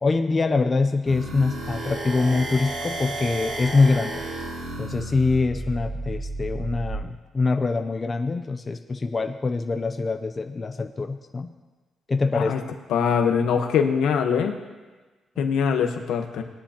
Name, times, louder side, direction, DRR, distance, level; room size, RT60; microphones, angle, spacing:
voice 1, 0.0-4.2 4.8-11.5 12.1-12.5 15.4-15.5, left 3 dB, 25° left, 7 dB, 0.5 m, -24 dB
sound 1, 1.0-7.0, right 2 dB, 70° right, 2.5 m, -32 dB
voice 2, 12.9-14.5 15.4-16.4, left 6 dB, 90° left, 5 dB, 1.1 m, -22 dB
19.0 x 10.0 x 2.9 m, 1.3 s
cardioid pair, 125°, 0 cm